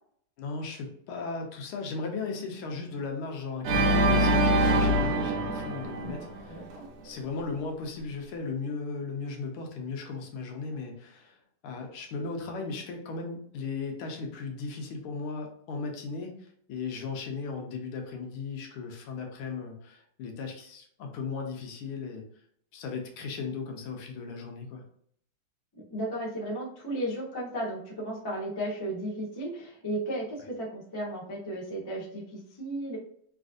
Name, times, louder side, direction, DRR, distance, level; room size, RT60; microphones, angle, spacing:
voice 1, 0.4-6.6 7.0-11.4 11.6-22.2 22.7-24.8, left 4 dB, 80° left, 3 dB, 1.6 m, -36 dB
Organ, 3.6-6.8, right 1 dB, 85° right, 1.5 m, -24 dB
voice 2, 5.6-6.2 6.5-6.9 25.7-33.0, right 1 dB, 35° left, -4 dB, 0.4 m, -35 dB
4.0 x 2.5 x 2.4 m, 0.65 s
omnidirectional pair, 2.4 m